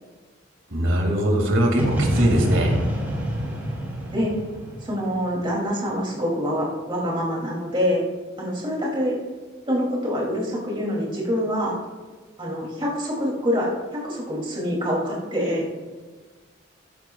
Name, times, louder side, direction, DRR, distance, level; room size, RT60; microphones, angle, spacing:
voice 1, 0.7-2.8, right 1 dB, 75° right, 1 dB, 2.1 m, -21 dB
sound 1, 1.8-5.6, equal, 10° right, 2.9 m, -26 dB
voice 2, 4.8-8.0 8.4-9.2 9.7-11.8 12.4-15.6, equal, 25° right, -3 dB, 2.6 m, -25 dB
14.0 x 10.5 x 2.3 m, 1.4 s
head